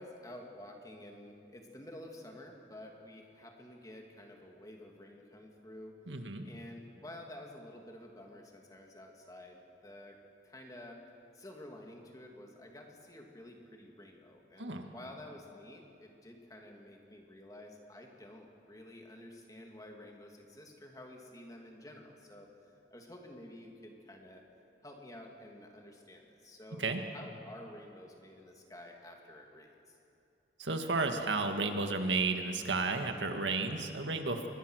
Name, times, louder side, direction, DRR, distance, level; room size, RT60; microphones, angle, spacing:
voice 1, 0.0-6.0 6.4-10.2 10.4-11.0 11.3-22.5 22.9-24.4 24.8-26.8 27.1-30.0, left 1 dB, 20° left, 1 dB, 2.5 m, -51 dB
voice 2, 6.1-6.4 14.6-14.9 26.8-27.0 30.6-34.5, right 3 dB, 85° right, 5 dB, 1.9 m, -32 dB
26.0 x 21.0 x 6.4 m, 2.6 s
head